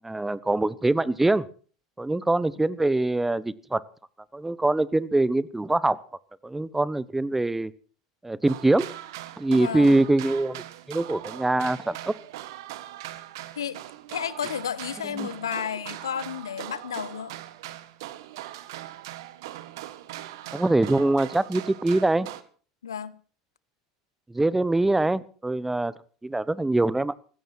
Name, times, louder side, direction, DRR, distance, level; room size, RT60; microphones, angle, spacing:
voice 1, 0.0-1.5 2.0-3.8 4.3-6.0 6.4-7.7 8.2-8.9 9.4-12.1 15.1-15.3 20.5-22.3 24.3-25.9 26.2-27.1, right 2 dB, 10° right, 1.0 m, -23 dB
sound 1, 8.5-22.4, right 14 dB, 70° right, 1.5 m, -40 dB
voice 2, 9.5-10.0 13.5-13.8 14.1-17.3 22.8-23.2, left 8 dB, 85° left, 1.0 m, -32 dB
19.0 x 16.0 x 4.5 m
hypercardioid pair, 80°, 2 cm